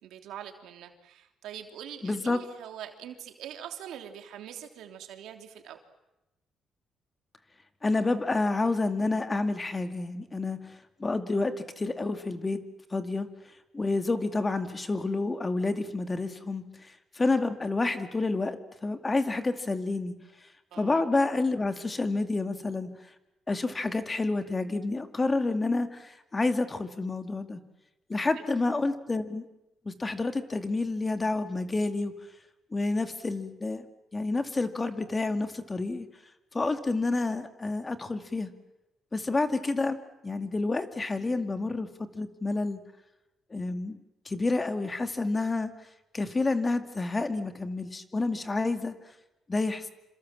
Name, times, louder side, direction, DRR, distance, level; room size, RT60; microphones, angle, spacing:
voice 1, 0.0-5.8 20.7-21.0 28.4-28.5, right 10 dB, 85° right, 5 dB, 3.1 m, -43 dB
voice 2, 2.0-2.4 7.8-12.6 12.9-13.3 13.7-20.2 20.8-22.9 23.5-27.6 28.1-29.5 29.8-32.1 32.7-33.8 34.1-36.1 36.5-38.5 39.1-40.0 40.2-42.8 43.5-44.0 44.3-45.7 46.1-48.9 49.5-49.9, left 3 dB, 25° left, 8 dB, 2.3 m, -29 dB
27.5 x 26.5 x 7.5 m, 0.95 s
cardioid pair, 90°, 0 cm